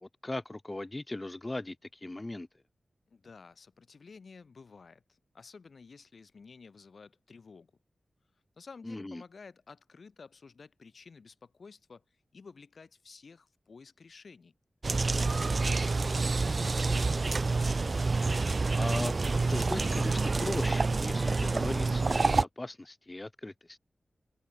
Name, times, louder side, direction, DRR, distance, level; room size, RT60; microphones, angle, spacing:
voice 1, 0.0-2.5 8.8-9.2 18.8-23.8, left 2 dB, 20° left, 1.2 m, -38 dB
voice 2, 3.1-7.7 8.6-12.0 12.3-14.5 15.1-15.4 15.8-17.6, left 4 dB, 60° left, 4.2 m, -52 dB
sound 1, 14.8-22.4, right 3 dB, 40° right, 0.6 m, -28 dB
wide cardioid pair, 85°, 0 cm